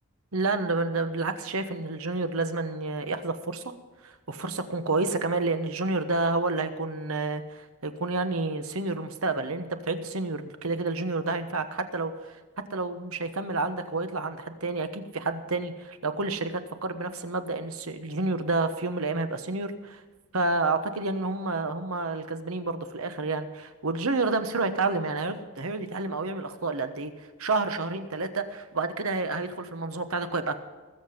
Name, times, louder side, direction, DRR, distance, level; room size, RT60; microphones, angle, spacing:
voice 1, 0.3-3.6 4.0-12.4 12.7-20.0 20.3-30.6, right 3 dB, 75° right, 9 dB, 1.2 m, -29 dB
20.0 x 7.9 x 5.2 m, 1.3 s
head